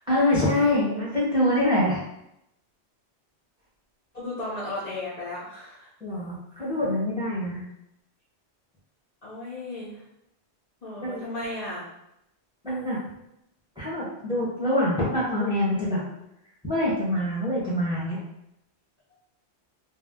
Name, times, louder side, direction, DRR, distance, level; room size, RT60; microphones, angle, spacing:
voice 1, 0.1-2.0 6.0-7.6 11.0-11.2 12.6-13.0 13.8-16.0 16.6-18.2, left 1 dB, 5° right, -7 dB, 0.9 m, -25 dB
voice 2, 4.1-5.9 9.2-10.0 10.8-11.9, left 2 dB, 45° left, -9 dB, 0.7 m, -35 dB
2.7 x 2.1 x 3.5 m, 0.83 s
omnidirectional pair, 1.1 m